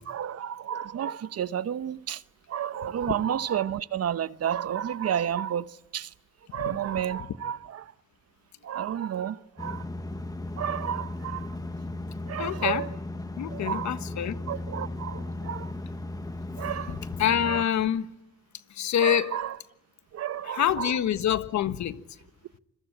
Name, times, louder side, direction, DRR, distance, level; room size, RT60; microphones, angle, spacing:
voice 1, 0.1-2.2 2.5-6.1 6.5-7.9 8.6-9.9 10.6-11.6 12.3-12.9 13.5-14.0 14.5-15.7 16.6-17.0 17.5-17.7 19.0-19.6 20.1-21.0, right 9 dB, 55° right, 0.9 m, -31 dB
sound 1, 9.6-17.6, left 2 dB, 10° left, 1.2 m, -36 dB
voice 2, 12.4-12.8 13.4-14.4 17.2-18.1 18.7-19.3 20.5-22.0, left 10 dB, 70° left, 1.5 m, -26 dB
26.5 x 22.5 x 8.9 m
cardioid pair, 90°, 30 cm